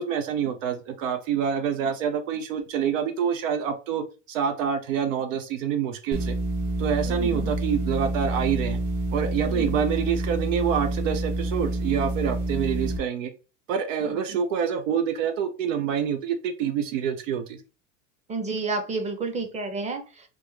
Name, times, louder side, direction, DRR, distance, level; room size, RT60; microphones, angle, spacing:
voice 1, 0.0-6.3 6.8-8.8 9.1-13.3 13.7-17.6, right 8 dB, 80° right, 7 dB, 0.6 m, -27 dB
sound 1, 6.1-13.0, right 2 dB, 50° right, 1.1 m, -28 dB
voice 2, 7.1-7.5 9.4-9.7 14.1-14.2 18.3-20.0, right 3 dB, 20° right, 6 dB, 0.7 m, -30 dB
3.5 x 2.1 x 3.1 m, 0.33 s
supercardioid pair, 110°, 38 cm